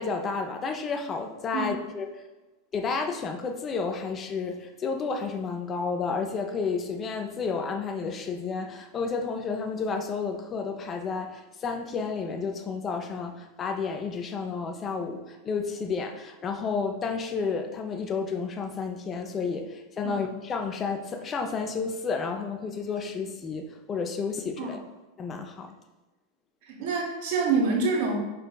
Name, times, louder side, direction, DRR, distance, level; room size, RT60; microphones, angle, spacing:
voice 1, 0.0-2.2 2.7-24.8 25.2-25.7, left 5 dB, 25° left, 5 dB, 0.4 m, -31 dB
voice 2, 26.6-28.2, right 4 dB, 50° right, 0 dB, 1.1 m, -26 dB
5.1 x 3.9 x 2.2 m, 1.1 s
figure-of-eight pair, 90°, 0 cm